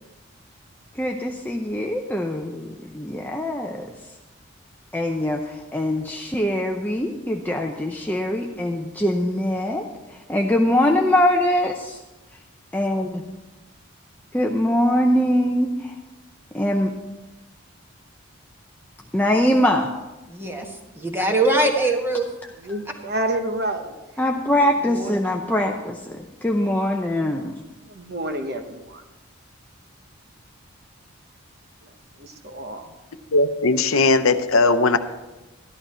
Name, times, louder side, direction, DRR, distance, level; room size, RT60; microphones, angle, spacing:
voice 1, 1.0-3.9 4.9-12.0 12.7-13.4 14.3-16.0 16.5-16.9 19.1-19.9 24.2-27.6, left 1 dB, 10° left, 0.6 m, -23 dB
voice 2, 20.3-22.3, right 2 dB, 10° right, 1.5 m, -22 dB
voice 3, 22.7-23.9 24.8-25.3 27.9-29.0 31.8-31.9 32.2-32.9, right 1 dB, 45° right, 1.1 m, -29 dB
voice 4, 33.3-35.0, left 3 dB, 75° left, 0.7 m, -18 dB
13.5 x 11.5 x 4.4 m
head